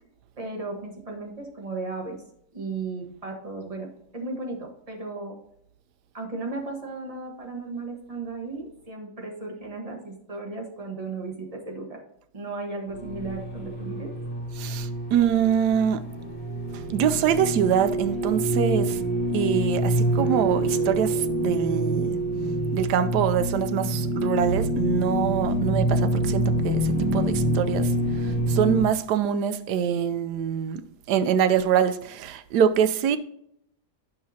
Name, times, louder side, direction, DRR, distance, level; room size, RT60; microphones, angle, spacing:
voice 1, 0.4-2.2 2.5-5.4 6.1-12.0 12.3-14.1, right 3 dB, 25° right, 1.3 m, -35 dB
sound 1, 12.9-28.8, right 1 dB, 60° left, 1.6 m, -26 dB
voice 2, 14.5-16.0 16.9-19.0 19.3-22.2 22.7-30.8 31.1-33.2, right 8 dB, 80° right, 1.2 m, -24 dB
9.4 x 5.8 x 2.8 m
omnidirectional pair, 1.8 m